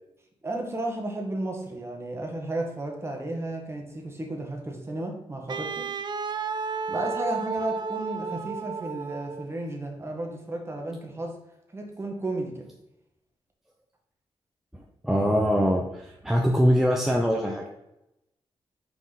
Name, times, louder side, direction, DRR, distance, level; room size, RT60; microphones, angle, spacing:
voice 1, 0.4-5.9 6.9-11.4 11.7-12.7, right 1 dB, 25° right, 1 dB, 1.6 m, -33 dB
Wind instrument woodwind instrument, 5.5-9.5, right 5 dB, 45° right, 0.4 m, -32 dB
voice 2, 14.7-17.7, equal, 5° right, -1 dB, 0.8 m, -23 dB
5.5 x 4.9 x 4.0 m, 0.88 s
cardioid pair, 90°, 10 cm